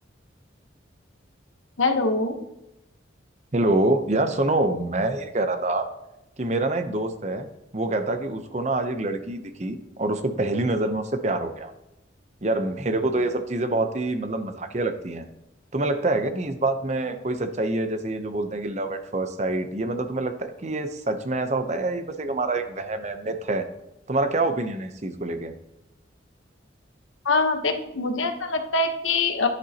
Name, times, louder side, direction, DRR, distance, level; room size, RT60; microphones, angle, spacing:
voice 1, 1.8-2.4 27.3-29.5, left 3 dB, 85° left, 6 dB, 1.1 m, -23 dB
voice 2, 3.5-5.9 6.4-11.7 12.4-15.3 15.7-23.6 24.1-25.5, right 2 dB, 35° right, 8 dB, 0.7 m, -26 dB
10.5 x 10.5 x 2.9 m, 0.90 s
head